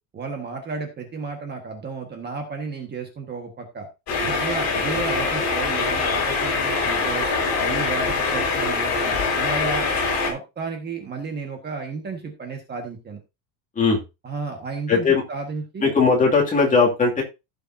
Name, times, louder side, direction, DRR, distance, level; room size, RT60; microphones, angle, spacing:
voice 1, 0.1-3.9 4.2-7.3 7.6-9.9 10.3-13.2 14.2-15.9, right 4 dB, 20° right, 4 dB, 1.6 m, -32 dB
sound 1, 4.1-10.3, left 4 dB, 35° left, 4.8 m, -23 dB
voice 2, 14.9-15.2 15.8-17.2, left 4 dB, 15° left, -1 dB, 2.5 m, -18 dB
16.0 x 6.9 x 2.7 m, 0.25 s
cardioid pair, 180°, 44 cm